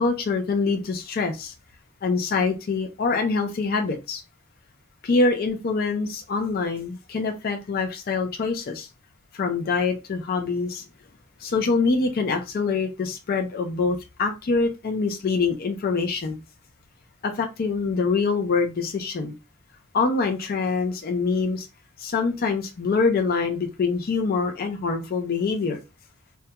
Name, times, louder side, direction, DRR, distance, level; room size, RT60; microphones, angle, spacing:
voice 1, 0.0-1.5 2.0-4.2 5.0-8.9 9.3-10.8 11.4-16.4 17.2-19.3 19.9-21.7 22.0-25.8, left 4 dB, 45° left, 0.4 m, -25 dB
2.2 x 2.2 x 2.7 m
head